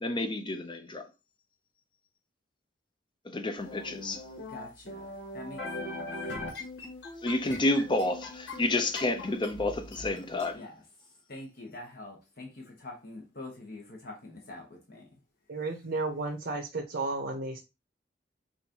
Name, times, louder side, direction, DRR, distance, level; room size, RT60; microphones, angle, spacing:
voice 1, 0.0-1.0 3.3-4.2 7.2-10.6, left 2 dB, 25° left, 0.6 m, -30 dB
sound 1, 3.7-10.5, left 2 dB, 90° left, 1.6 m, -41 dB
voice 2, 4.5-6.1 7.4-7.6 10.5-10.8 11.3-15.0, left 2 dB, 60° left, 1.1 m, -45 dB
voice 3, 15.5-17.6, right 3 dB, 65° right, 0.8 m, -33 dB
5.7 x 2.6 x 2.9 m
head